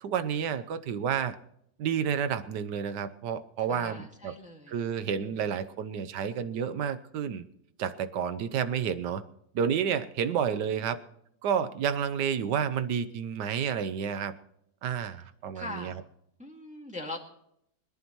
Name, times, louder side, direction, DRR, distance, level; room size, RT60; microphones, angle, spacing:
voice 1, 0.0-1.4 1.8-4.3 4.7-7.5 7.8-9.2 9.5-11.0 11.4-14.3 14.8-16.0, right 7 dB, 85° right, 11 dB, 1.5 m, -30 dB
voice 2, 3.7-4.8 15.5-16.0 16.4-17.2, left 2 dB, 5° right, 1 dB, 1.8 m, -41 dB
25.0 x 11.0 x 3.1 m, 0.74 s
omnidirectional pair, 1.8 m